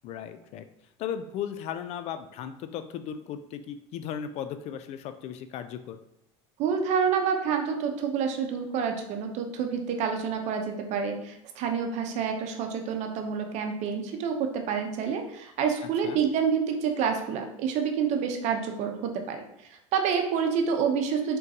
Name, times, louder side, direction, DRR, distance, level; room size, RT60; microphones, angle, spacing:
voice 1, 0.0-0.7 1.0-6.0 16.0-16.2, left 9 dB, 50° left, 9 dB, 0.4 m, -36 dB
voice 2, 6.6-21.4, right 6 dB, 55° right, 4 dB, 0.7 m, -28 dB
3.8 x 3.7 x 2.8 m, 0.82 s
supercardioid pair, 110°, 14 cm